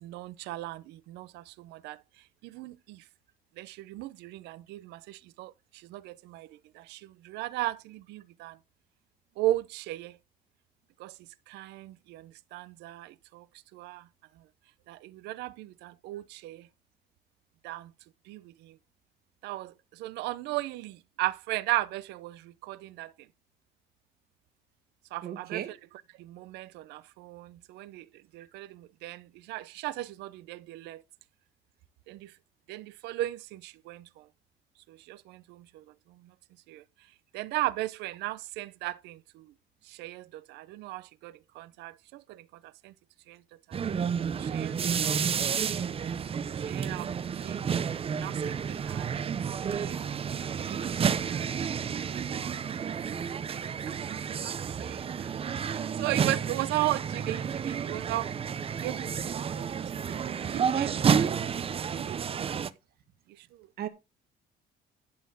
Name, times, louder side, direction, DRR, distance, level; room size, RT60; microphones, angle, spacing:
voice 1, 0.0-2.0 2.4-3.0 3.6-8.6 9.4-10.2 11.0-11.2 11.5-13.5 13.7-14.1 14.9-16.7 17.6-17.9 18.3-18.8 19.4-23.1 25.1-25.8 26.2-28.1 28.3-31.0 32.1-32.3 32.7-34.3 34.9-35.8 36.7-36.8 37.3-39.5 39.8-42.9 43.3-43.4 44.3-45.9 46.6-47.1 47.4-47.7 48.1-49.4 49.7-50.0 50.7-51.7 51.9-58.3 58.8-61.4 61.9-62.5 63.3-63.7, right 16 dB, 85° right, 0.7 m, -37 dB
voice 2, 25.2-25.7 63.8-63.9, right 11 dB, 65° right, 1.9 m, -36 dB
sound 1, 43.7-62.7, right 7 dB, 35° right, 0.7 m, -30 dB
11.5 x 4.3 x 6.9 m
cardioid pair, 110°, 17 cm